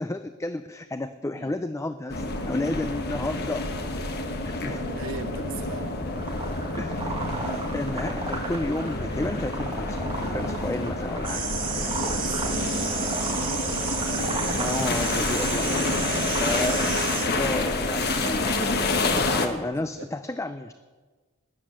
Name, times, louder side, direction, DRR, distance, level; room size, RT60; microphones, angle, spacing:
voice 1, 0.0-3.7 4.5-4.8 6.8-7.2 7.7-11.4 14.6-16.0 16.4-16.9 17.3-20.7, left 2 dB, 15° left, 10 dB, 0.4 m, -32 dB
sound 1, 2.1-19.5, left 2 dB, 45° left, 1.3 m, -28 dB
voice 2, 4.6-6.0 12.1-13.1 14.1-14.8 15.1-16.0 19.7-20.1, right 3 dB, 60° right, 5 dB, 1.2 m, -39 dB
sound 2, 6.2-18.7, right 2 dB, 25° right, 1.7 m, -36 dB
sound 3, 11.2-17.3, right 6 dB, 40° right, 2.0 m, -32 dB
13.0 x 7.8 x 9.3 m, 1.4 s
head